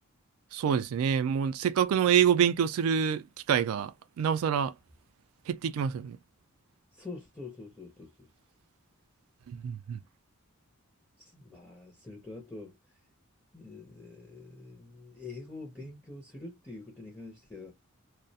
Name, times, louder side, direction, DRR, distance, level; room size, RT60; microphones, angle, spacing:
voice 1, 0.5-4.7 5.5-6.2 9.5-10.0, right 8 dB, 70° right, 0.3 m, -27 dB
voice 2, 6.9-8.3 11.2-12.8 13.5-17.7, left 3 dB, 10° left, 0.6 m, -45 dB
2.3 x 2.0 x 2.6 m
head